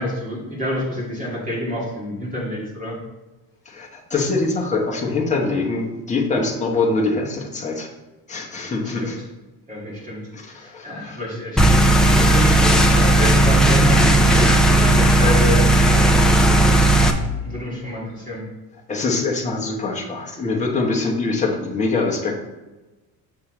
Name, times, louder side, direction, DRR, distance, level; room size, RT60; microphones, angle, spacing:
voice 1, 0.0-3.0 8.8-9.1 9.7-11.7 12.1-15.7 15.9-16.8 17.4-18.4, left 1 dB, 20° right, -5 dB, 2.5 m, -28 dB
voice 2, 3.6-7.9 8.3-9.2 10.3-11.2 18.9-22.3, left 3 dB, 20° left, 0 dB, 1.1 m, -23 dB
sound 1, 11.6-17.1, right 1 dB, ahead, 0.4 m, -15 dB
7.2 x 6.7 x 3.3 m, 1.1 s
cardioid pair, 165°, 38 cm